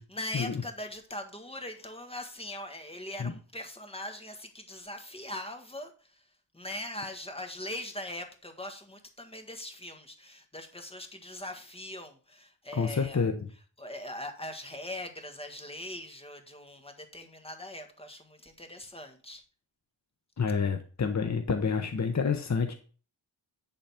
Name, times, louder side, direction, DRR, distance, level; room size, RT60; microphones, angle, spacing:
voice 1, 0.0-6.3 6.5-13.3 13.8-19.4, left 1 dB, 10° left, 1.7 m, -41 dB
voice 2, 12.7-13.5 20.4-22.7, left 5 dB, 35° left, 1.0 m, -28 dB
10.5 x 4.0 x 5.7 m
wide cardioid pair, 100°, 49 cm